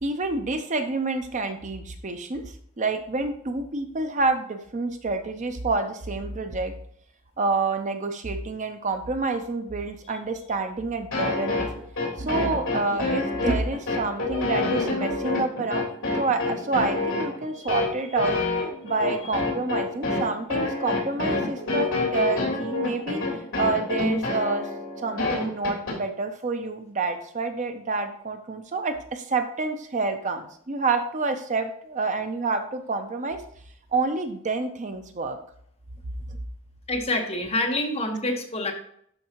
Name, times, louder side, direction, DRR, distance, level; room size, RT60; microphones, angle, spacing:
voice 1, 0.0-6.7 7.4-11.7 12.2-18.4 18.8-24.7 25.0-33.4 33.9-35.4, right 3 dB, 35° right, 7 dB, 0.6 m, -28 dB
sound 1, 11.1-26.0, left 3 dB, 65° left, 3.4 m, -27 dB
voice 2, 36.9-38.7, left 2 dB, 30° left, 2 dB, 1.3 m, -27 dB
11.5 x 4.7 x 3.0 m, 0.65 s
head